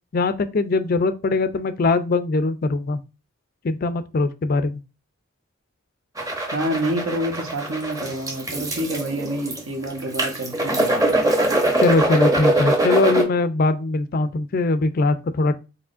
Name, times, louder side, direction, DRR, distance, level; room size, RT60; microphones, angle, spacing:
voice 1, 0.1-3.0 3.6-4.8 11.8-15.6, left 3 dB, 45° left, 0.4 m, -21 dB
sound 1, 6.2-13.2, right 1 dB, 15° right, 0.8 m, -22 dB
voice 2, 6.4-11.2, right 1 dB, 70° right, 1.2 m, -28 dB
4.8 x 4.2 x 2.5 m
head